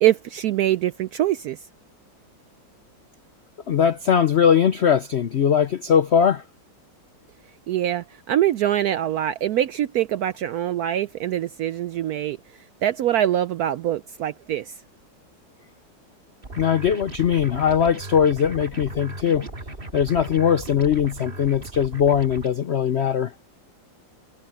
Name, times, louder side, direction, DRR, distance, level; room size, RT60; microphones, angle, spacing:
voice 1, 0.0-1.6 7.7-12.4 12.8-14.7, right 12 dB, 75° right, 0.8 m, -23 dB
voice 2, 3.7-6.4 16.6-19.5 19.9-23.3, left 8 dB, 80° left, 0.6 m, -20 dB
sound 1, 16.4-22.5, right 2 dB, 30° right, 2.1 m, -37 dB
omnidirectional pair, 2.1 m